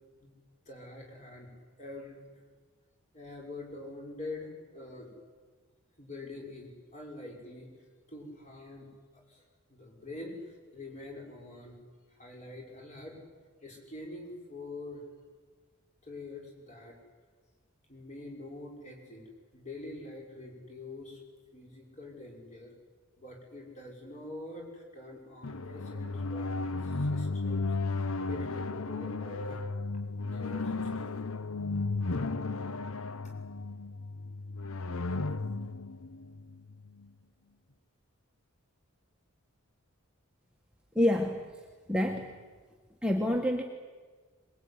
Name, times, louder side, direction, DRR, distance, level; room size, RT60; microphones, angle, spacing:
voice 1, 0.7-1.5 1.8-2.2 3.1-5.1 6.0-7.7 8.1-9.4 9.7-11.8 12.2-13.2 13.6-15.0 16.0-17.0 17.9-19.2 19.5-21.2 21.5-22.7 23.2-27.7 28.3-29.6 30.2-31.1, left 2 dB, 35° left, 0 dB, 5.9 m, -45 dB
sound 1, 25.4-37.1, left 3 dB, 80° left, 0.8 m, -34 dB
voice 2, 40.9-41.4 41.9-42.3 43.0-43.6, left 1 dB, 5° right, 1 dB, 1.5 m, -27 dB
22.5 x 21.0 x 9.7 m, 1.5 s
head